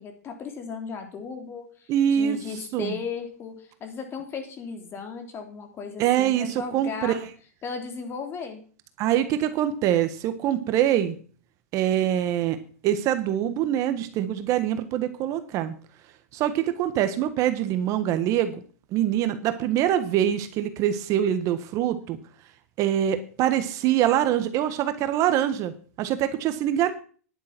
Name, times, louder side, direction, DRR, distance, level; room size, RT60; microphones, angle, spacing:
voice 1, 0.0-7.2 7.6-8.6, left 5 dB, 30° left, 5 dB, 3.4 m, -36 dB
voice 2, 1.9-2.4 2.7-2.9 6.0-7.2 9.0-11.2 11.7-12.6 12.8-15.7 16.3-18.6 18.9-22.2 22.8-26.9, right 11 dB, 40° right, 10 dB, 1.4 m, -24 dB
11.0 x 9.1 x 6.0 m, 0.43 s
hypercardioid pair, 120°, 8 cm